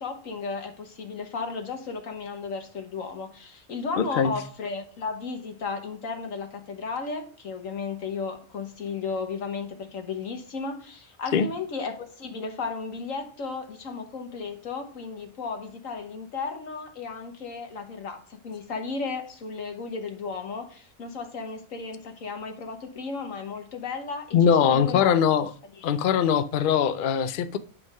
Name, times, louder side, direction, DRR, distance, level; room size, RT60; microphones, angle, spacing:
voice 1, 0.0-25.1 25.8-25.9, left 4 dB, 75° left, 1.7 m, -34 dB
voice 2, 4.0-4.3 11.3-11.5 24.3-25.5 25.8-27.6, left 7 dB, 55° left, 0.6 m, -21 dB
11.0 x 3.7 x 5.3 m
omnidirectional pair, 1.4 m